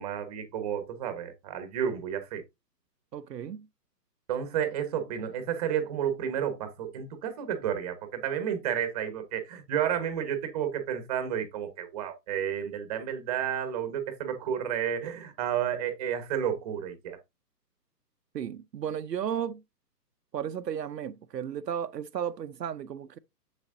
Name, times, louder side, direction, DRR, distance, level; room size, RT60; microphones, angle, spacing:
voice 1, 0.0-2.4 4.3-17.2, right 9 dB, 25° right, 1.1 m, -31 dB
voice 2, 3.1-3.7 18.3-19.6 20.3-23.2, right 8 dB, 75° right, 0.8 m, -34 dB
7.4 x 7.1 x 2.5 m
hypercardioid pair, 150°, 50 cm